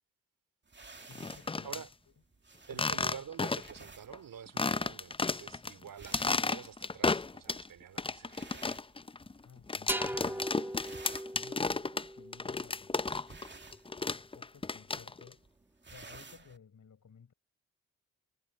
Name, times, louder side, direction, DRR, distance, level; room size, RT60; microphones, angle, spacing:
sound 1, 0.7-9.6 9.9-10.3 10.6-16.6, right 3 dB, 30° right, 2.5 m, -54 dB
voice 1, 1.1-1.9 2.7-2.8 9.4-10.5 11.3-13.1 14.1-15.5 15.9-17.3, left 6 dB, 55° left, 6.9 m, -56 dB
sound 2, 1.1-1.8 2.7-3.8 4.1-4.2 4.6-5.7 6.0-7.7 8.0-13.5 13.7-15.3, left 3 dB, 15° left, 0.6 m, -33 dB
voice 2, 2.7-8.7, right 8 dB, 65° right, 3.1 m, -48 dB
sound 3, 9.9-13.5, right 1 dB, 5° right, 1.3 m, -40 dB
hypercardioid pair, 40°, 35 cm